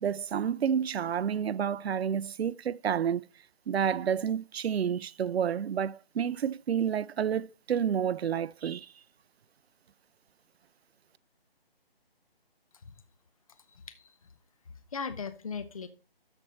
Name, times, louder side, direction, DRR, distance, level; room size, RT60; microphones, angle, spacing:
voice 1, 0.0-3.2 3.7-8.9, right 8 dB, 85° right, 0.5 m, -29 dB
voice 2, 13.6-14.3 14.7-15.9, left 5 dB, 35° left, 0.8 m, -39 dB
12.5 x 4.4 x 4.3 m
hypercardioid pair, 165°, 31 cm